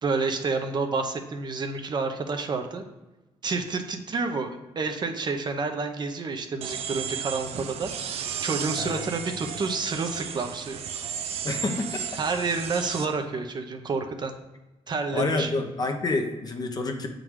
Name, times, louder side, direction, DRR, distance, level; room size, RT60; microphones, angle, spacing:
voice 1, 0.0-2.8 3.4-10.8 12.2-14.3 14.9-15.5, right 4 dB, 45° right, 5 dB, 0.8 m, -29 dB
sound 1, 6.6-13.1, right 7 dB, 80° right, 0.5 m, -34 dB
voice 2, 8.8-9.1 9.4-9.5 11.4-12.0 15.1-17.1, left 3 dB, 40° left, 4 dB, 0.8 m, -28 dB
7.6 x 3.9 x 4.6 m, 1.1 s
cardioid pair, 95°, 10 cm